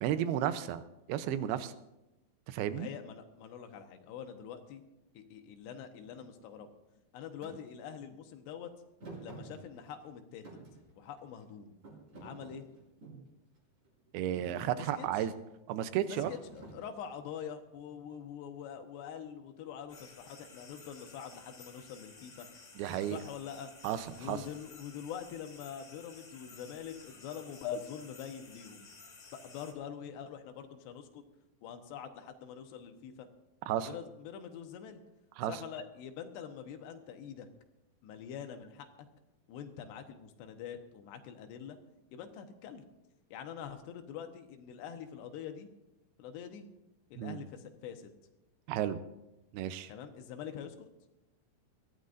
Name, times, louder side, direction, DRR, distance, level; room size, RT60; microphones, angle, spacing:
voice 1, 0.0-0.8 1.1-1.7 2.5-2.9 14.1-15.3 15.7-16.3 22.8-23.2 23.8-24.4 33.7-33.9 35.4-35.5 47.2-47.4 48.7-49.0 49.5-49.9, right 11 dB, 80° right, 12 dB, 2.6 m, -33 dB
voice 2, 2.7-4.8 5.1-6.7 7.1-8.7 9.2-10.5 11.0-11.7 12.2-12.6 14.8-15.3 16.1-22.5 23.0-23.7 24.1-28.9 29.3-31.2 31.6-33.3 33.8-35.0 35.5-37.5 38.0-39.1 39.5-41.8 42.1-42.8 43.3-45.7 46.2-46.7 47.1-48.1 49.9-50.9, left 8 dB, 90° left, 6 dB, 3.3 m, -45 dB
Thump thud, 7.4-7.6 9.0-10.1 10.4-11.4 11.8-13.3 13.9-14.1 14.3-14.7 16.2-17.2, right 2 dB, 45° right, 7.5 m, -49 dB
sound 1, 19.9-29.7, left 4 dB, 40° left, 1.9 m, -54 dB
22.5 x 15.0 x 2.6 m, 0.95 s
omnidirectional pair, 4.8 m